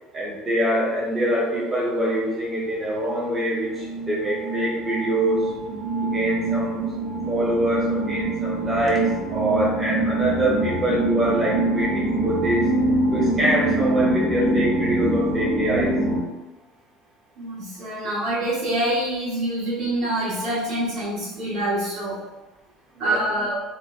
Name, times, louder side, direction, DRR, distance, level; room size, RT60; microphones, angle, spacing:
voice 1, 0.1-5.5 6.0-6.9 7.3-12.7 13.1-16.0 23.0-23.2, right 1 dB, 15° right, -5 dB, 0.7 m, -24 dB
sound 1, 2.8-2.9 3.1-16.2, right 2 dB, 70° right, 0.6 m, -25 dB
voice 2, 17.4-22.2 23.0-23.6, right 1 dB, 55° right, -9 dB, 1.4 m, -26 dB
3.0 x 2.1 x 2.4 m, 1.1 s
cardioid pair, 165°, 0 cm